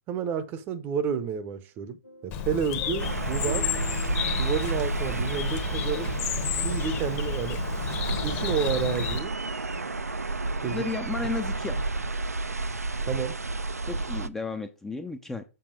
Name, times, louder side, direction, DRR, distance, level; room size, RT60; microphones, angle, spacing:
voice 1, 0.1-3.7 4.4-6.1 6.6-7.6 8.2-9.3 10.6-10.8 13.1-13.4, right 7 dB, 25° right, 0.8 m, -30 dB
sound 1, 2.0-9.1, left 2 dB, 85° left, 0.9 m, -47 dB
Bird, 2.3-9.2, left 9 dB, 30° left, 1.1 m, -32 dB
sound 2, 3.0-14.3, right 3 dB, 80° right, 0.6 m, -31 dB
voice 2, 10.6-11.8 13.8-15.4, left 3 dB, 5° left, 0.5 m, -33 dB
7.0 x 5.3 x 4.9 m
figure-of-eight pair, 120°, 8 cm